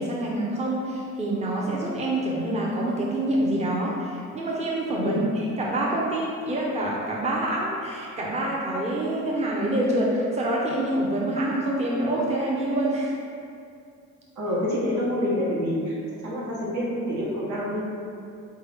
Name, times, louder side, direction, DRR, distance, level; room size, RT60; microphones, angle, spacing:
voice 1, 0.0-5.2 5.6-13.1, right 1 dB, 20° right, -4 dB, 0.6 m, -26 dB
voice 2, 14.4-16.0 16.2-17.8, left 1 dB, 70° right, -6 dB, 1.2 m, -27 dB
3.9 x 3.3 x 3.4 m, 2.4 s
cardioid pair, 90°, 30 cm